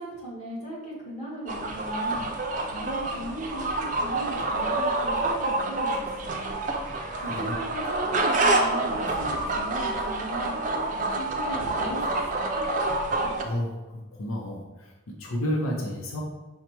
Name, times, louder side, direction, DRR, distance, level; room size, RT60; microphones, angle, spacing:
voice 1, 0.0-2.3 2.6-6.5 7.2-10.5 10.9-12.6, right 1 dB, 30° left, -7 dB, 1.4 m, -37 dB
sound 1, 1.5-13.4, right 2 dB, 40° right, 0.4 m, -27 dB
voice 2, 7.2-7.6 13.4-16.2, equal, 90° left, -1 dB, 0.7 m, -31 dB
5.5 x 2.1 x 4.4 m, 1.1 s
head